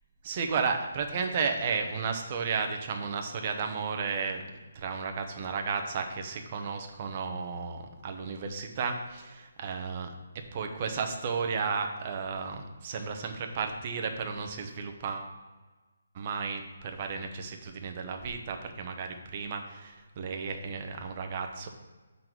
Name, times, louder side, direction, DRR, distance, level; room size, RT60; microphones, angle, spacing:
voice 1, 0.2-4.4 4.7-10.1 10.5-15.3 16.1-21.7, right 5 dB, 35° right, 4 dB, 0.8 m, -33 dB
7.3 x 4.0 x 4.6 m, 1.3 s
hypercardioid pair, 160°, 0 cm